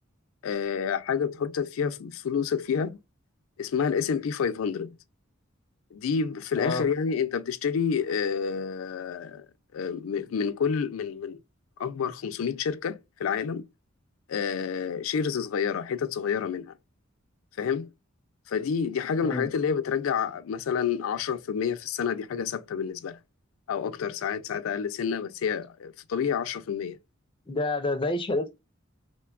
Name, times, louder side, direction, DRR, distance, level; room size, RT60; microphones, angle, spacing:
voice 1, 0.4-3.0 3.6-5.0 5.9-9.5 9.7-11.4 11.8-13.6 14.3-16.7 17.6-17.9 18.5-23.2 23.7-27.0, left 6 dB, 85° left, 0.4 m, -29 dB
voice 2, 27.5-28.5, left 2 dB, 25° left, 0.4 m, -28 dB
3.1 x 2.2 x 2.3 m
head